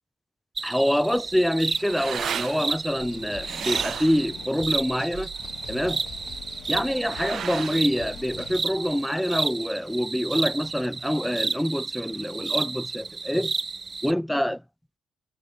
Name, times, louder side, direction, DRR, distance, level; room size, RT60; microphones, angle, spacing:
voice 1, 0.6-5.3 5.7-6.0 6.7-13.5 14.0-14.6, equal, ahead, 0.4 m, -26 dB
sound 1, 0.6-14.1, right 4 dB, 30° right, 0.7 m, -32 dB
sound 2, 1.2-9.0, right 9 dB, 65° right, 2.8 m, -37 dB
sound 3, 3.0-8.6, left 12 dB, 80° left, 5.3 m, -44 dB
cardioid pair, 90°, 0 cm